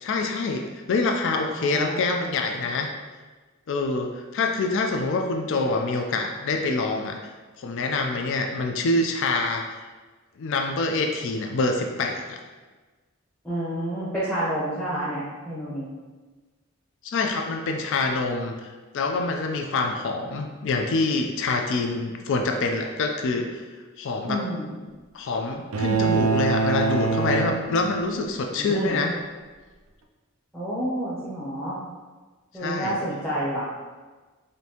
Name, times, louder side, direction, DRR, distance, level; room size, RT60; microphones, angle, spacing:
voice 1, 0.0-2.9 3.7-7.2 7.6-9.6 10.4-12.4 17.0-23.6 24.0-24.4 25.1-29.2 32.6-33.0, left 3 dB, 60° left, 3 dB, 0.4 m, -26 dB
voice 2, 1.6-2.5 13.4-15.9 24.2-24.7 28.6-29.0 30.5-31.8 32.5-33.6, right 1 dB, 5° left, -11 dB, 0.8 m, -29 dB
sound 1, 25.7-28.3, right 4 dB, 70° right, 0.4 m, -24 dB
5.1 x 2.6 x 2.8 m, 1.3 s
head